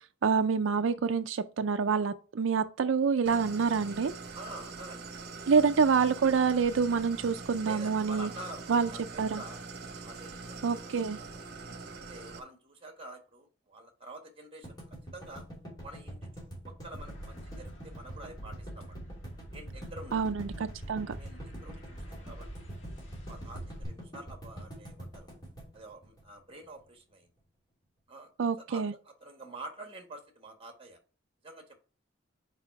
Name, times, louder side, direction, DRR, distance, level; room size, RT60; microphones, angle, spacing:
voice 1, 0.2-4.1 5.5-8.3 8.7-8.9 9.2-9.4 10.6-11.2 20.1-21.2 28.4-28.9, right 5 dB, 85° right, 0.4 m, -27 dB
Idling, 3.3-12.4, right 4 dB, 55° right, 1.0 m, -43 dB
voice 2, 4.3-5.4 7.6-9.6 10.0-11.6 12.1-14.8 15.1-15.4 15.8-16.2 16.6-19.0 19.5-20.2 21.2-22.7 23.3-25.3 25.7-27.3 28.1-28.3 28.6-31.0 31.4-31.8, right 2 dB, 30° right, 1.5 m, -47 dB
sound 1, 14.6-26.8, right 1 dB, 20° left, 2.8 m, -45 dB
sound 2, 17.0-23.8, right 1 dB, 90° left, 1.4 m, -46 dB
5.6 x 4.9 x 4.7 m
head